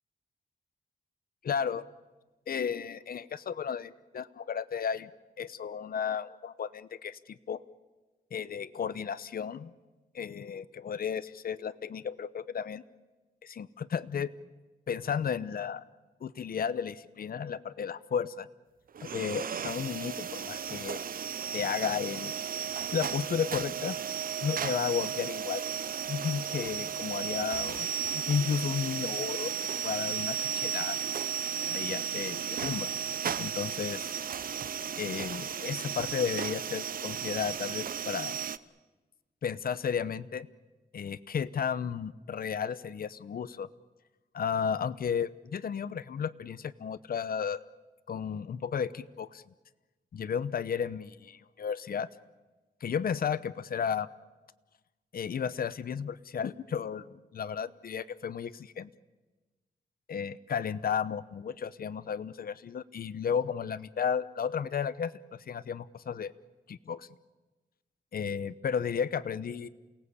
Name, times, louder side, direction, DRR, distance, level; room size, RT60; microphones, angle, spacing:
voice 1, 1.4-1.8 2.5-5.1 5.4-7.6 8.3-9.7 10.1-12.8 13.4-14.3 14.9-15.8 16.2-18.5 19.0-21.0 21.5-22.3 22.9-24.0 24.4-25.7 26.1-29.6 29.8-31.0 31.6-32.9 33.4-34.1 35.0-38.4 39.4-40.5 40.9-43.7 44.3-47.6 48.1-49.4 50.1-52.1 52.8-54.1 55.1-58.9 60.1-65.1 65.5-66.3 66.7-67.1 68.1-69.7, left 7 dB, 60° left, 15 dB, 0.9 m, -33 dB
sound 1, 18.9-38.6, right 8 dB, 60° right, 0.8 m, -34 dB
28.5 x 18.5 x 8.3 m, 1.2 s
wide cardioid pair, 100°, 17 cm